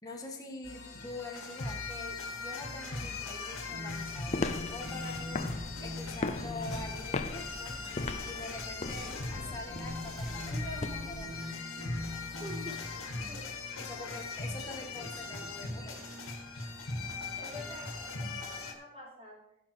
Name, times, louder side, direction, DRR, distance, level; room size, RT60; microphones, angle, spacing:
voice 1, 0.0-10.7 11.1-11.6 13.8-16.0 17.5-17.8, left 2 dB, 15° left, -1 dB, 1.6 m, -45 dB
sound 1, 0.6-18.7, left 3 dB, 85° left, 2.1 m, -40 dB
sound 2, 3.7-7.1 7.8-8.2 9.0-9.4 9.7-13.2 13.8-14.3 14.6-15.9, left 2 dB, 55° left, 3.2 m, -44 dB
sound 3, 4.1-11.3, left 3 dB, 35° left, 0.6 m, -39 dB
voice 2, 10.5-11.0 12.4-12.8 13.3-13.4 17.4-19.4, equal, 30° right, -3 dB, 3.7 m, -46 dB
15.5 x 5.9 x 4.9 m, 0.81 s
head